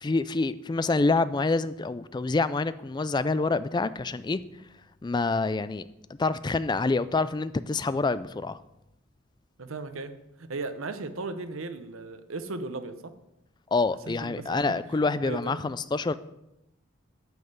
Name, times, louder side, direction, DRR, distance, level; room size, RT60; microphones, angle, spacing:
voice 1, 0.0-4.4 5.0-5.9 6.2-8.6 13.7-16.1, left 3 dB, 20° left, 15 dB, 0.3 m, -27 dB
voice 2, 9.6-10.1 10.4-13.1 14.1-15.6, right 3 dB, 75° right, 10 dB, 0.9 m, -37 dB
9.3 x 5.5 x 8.0 m, 0.90 s
head